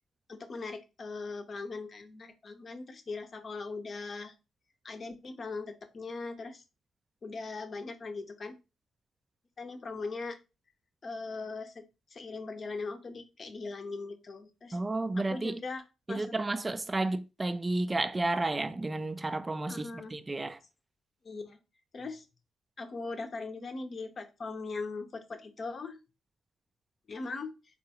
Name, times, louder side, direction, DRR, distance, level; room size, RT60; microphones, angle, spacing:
voice 1, 0.3-4.3 4.8-6.6 7.2-8.5 9.6-10.4 11.0-11.8 12.1-14.8 15.2-15.8 16.1-16.3 19.7-20.1 21.2-21.6 21.9-22.2 22.8-26.0 27.1-27.5, left 3 dB, 50° left, 0.7 m, -40 dB
voice 2, 14.7-15.6 16.1-20.6, right 2 dB, 25° right, 0.3 m, -32 dB
3.6 x 2.3 x 2.8 m
hypercardioid pair, 45°, 0 cm